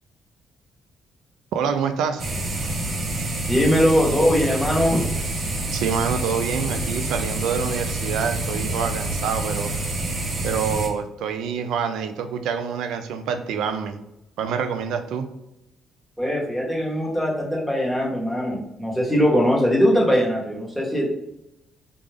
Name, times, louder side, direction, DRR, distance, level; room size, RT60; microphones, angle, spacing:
voice 1, 1.5-2.2 5.7-9.7 10.4-14.0 14.4-15.3, right 6 dB, 85° right, 9 dB, 0.3 m, -26 dB
sound 1, 2.2-10.9, right 2 dB, 45° right, 0.8 m, -27 dB
voice 2, 3.5-5.0 16.2-21.1, equal, 5° right, -3 dB, 1.2 m, -21 dB
3.7 x 2.4 x 3.3 m, 0.86 s
cardioid pair, 90°, 0 cm